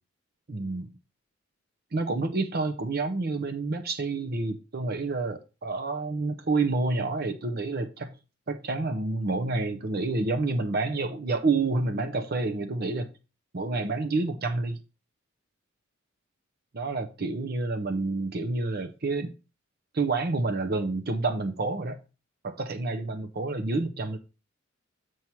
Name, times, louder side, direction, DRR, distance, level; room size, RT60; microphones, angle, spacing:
voice 1, 0.5-0.9 1.9-8.1 8.5-13.1 13.5-14.8 16.7-19.3 19.9-22.0 22.4-24.2, right 3 dB, 50° right, 0.8 m, -28 dB
7.3 x 4.7 x 4.5 m
head